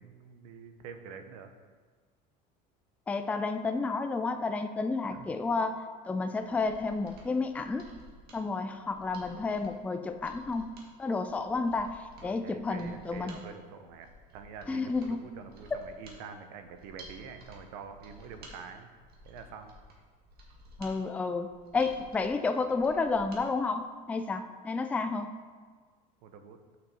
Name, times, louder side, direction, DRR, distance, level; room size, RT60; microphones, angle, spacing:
voice 1, 0.0-1.5 5.1-5.3 12.2-18.9 19.2-19.8 26.2-26.6, right 6 dB, 80° right, 8 dB, 0.8 m, -46 dB
voice 2, 3.1-5.8 6.1-7.9 8.3-10.7 11.0-13.4 14.7-15.2 15.7-15.8 20.8-25.3, left 3 dB, 5° left, 8 dB, 0.3 m, -31 dB
Mechanisms, 6.4-23.4 23.8-23.9, right 1 dB, 50° right, 1.7 m, -54 dB
6.2 x 6.1 x 4.1 m, 1.5 s
supercardioid pair, 120°, 20 cm